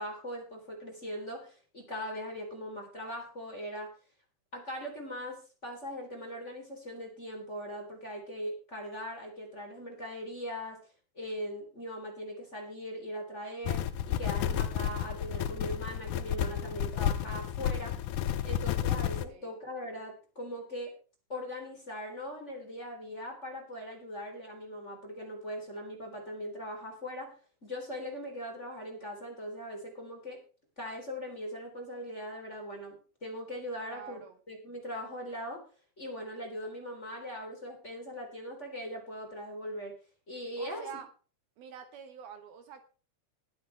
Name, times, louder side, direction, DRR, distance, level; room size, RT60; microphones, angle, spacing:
voice 1, 0.0-3.9 4.5-10.8 11.1-18.0 18.4-20.9 21.3-27.3 27.6-30.4 30.8-34.2 34.5-35.6 36.0-40.0 40.3-40.9, equal, 15° left, 1 dB, 3.5 m, -40 dB
sound 1, 13.6-19.2, left 10 dB, 90° left, 1.8 m, -31 dB
voice 2, 19.3-19.6 33.9-34.3 40.6-41.1 41.6-42.8, right 7 dB, 70° right, 8 dB, 3.0 m, -46 dB
20.5 x 8.9 x 3.4 m, 0.37 s
omnidirectional pair, 4.8 m